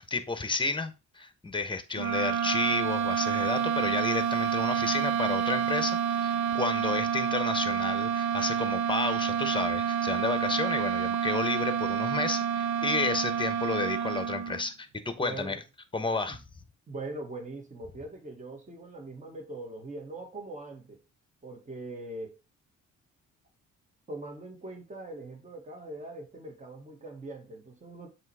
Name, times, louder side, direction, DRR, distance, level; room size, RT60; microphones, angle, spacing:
voice 1, 0.1-15.6 15.9-16.4, left 3 dB, 15° left, 1.1 m, -31 dB
sound 1, 1.9-14.7, right 8 dB, 70° right, 0.8 m, -28 dB
voice 2, 15.2-15.6 16.3-16.4 16.9-21.0 21.4-22.4 24.1-28.1, right 2 dB, 25° right, 1.8 m, -41 dB
7.5 x 3.2 x 4.8 m
cardioid pair, 90°, 30 cm